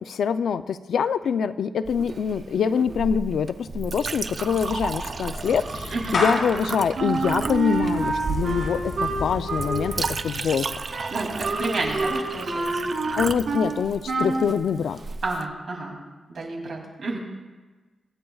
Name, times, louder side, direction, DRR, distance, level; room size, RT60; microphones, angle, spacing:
voice 1, 0.1-10.7 13.2-15.0, left 7 dB, 85° left, 12 dB, 0.4 m, -25 dB
Chink clink, 1.8-15.4, right 4 dB, 40° right, 0.4 m, -34 dB
Clapping / Meow, 4.4-10.7, left 2 dB, 50° left, 4.6 m, -33 dB
voice 2, 5.9-6.2 11.1-12.9 15.2-16.0 16.3-17.2, right 2 dB, 60° right, -1 dB, 2.7 m, -30 dB
Wind instrument woodwind instrument, 7.0-13.7 14.1-14.5, right 3 dB, 85° right, 3.0 m, -28 dB
25.0 x 9.1 x 2.3 m, 1.3 s
wide cardioid pair, 150°, 0 cm